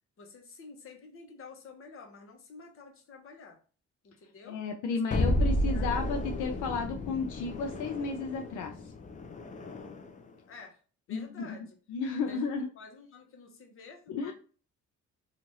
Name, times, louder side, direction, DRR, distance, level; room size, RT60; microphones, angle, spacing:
voice 1, 0.2-3.6 4.0-4.6 4.9-5.0 5.3-5.9 10.5-10.8 11.1-11.8 12.3-12.5 12.8-14.3, left 4 dB, 45° left, 3 dB, 0.9 m, -50 dB
voice 2, 4.5-8.7 11.1-11.5 11.9-12.7 14.1-14.3, left 4 dB, 80° left, 4 dB, 0.5 m, -33 dB
sound 1, 5.1-10.2, equal, 25° left, 0.4 m, -32 dB
3.0 x 2.4 x 2.7 m, 0.38 s
cardioid pair, 90°, 30 cm